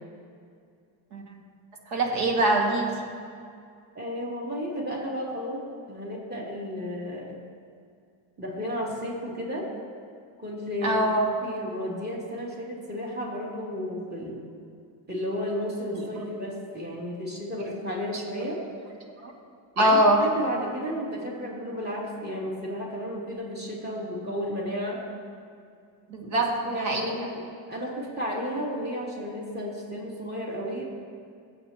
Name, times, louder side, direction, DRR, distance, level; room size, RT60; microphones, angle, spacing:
voice 1, 1.9-3.0 10.8-11.2 15.9-16.2 18.1-18.2 19.2-19.3 19.8-20.2 26.1-27.1, right 1 dB, 80° right, 0 dB, 2.2 m, -23 dB
voice 2, 3.9-7.3 8.4-9.7 10.4-11.1 11.4-14.4 15.1-18.6 19.8-25.0 26.2-30.8, equal, 20° right, -4 dB, 2.9 m, -33 dB
23.5 x 8.2 x 2.9 m, 2.3 s
supercardioid pair, 90°, 47 cm